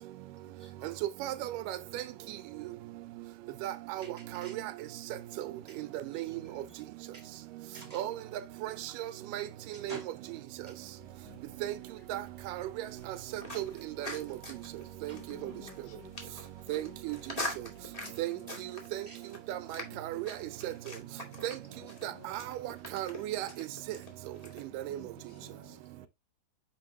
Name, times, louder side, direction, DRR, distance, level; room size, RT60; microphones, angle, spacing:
voice 1, 0.4-1.0 4.0-4.6 5.7-5.8 6.1-6.8 7.1-7.2 7.7-8.5 9.7-10.1 10.7-10.8 15.1-15.6 18.4-19.2 21.6-22.2 25.1-25.9, right 2 dB, 10° left, 1.7 m, -53 dB
voice 2, 1.2-2.0 3.6-4.1 4.4-4.6 6.2-6.3 7.9-8.1 8.6-8.7 9.3-9.4 9.8-10.0 11.6-11.7 12.1-12.2 13.6-13.7 14.0-14.2 15.0-15.1 16.7-17.2 18.2-18.4 18.9-19.0 19.7-20.3 20.6-20.7 21.4-21.5 22.0-22.1 22.9-23.5 24.7-25.0, right 14 dB, 80° right, 2.1 m, -34 dB
sound 1, 11.0-18.8, right 4 dB, 50° left, 3.8 m, -58 dB
sound 2, 13.0-24.6, left 1 dB, 30° left, 0.6 m, -44 dB
voice 3, 15.1-16.4 16.7-17.0 18.0-18.5 19.9-20.0 20.4-20.5 21.8-22.4 24.7-26.1, left 11 dB, 80° left, 2.8 m, -55 dB
9.2 x 3.6 x 3.1 m
omnidirectional pair, 4.0 m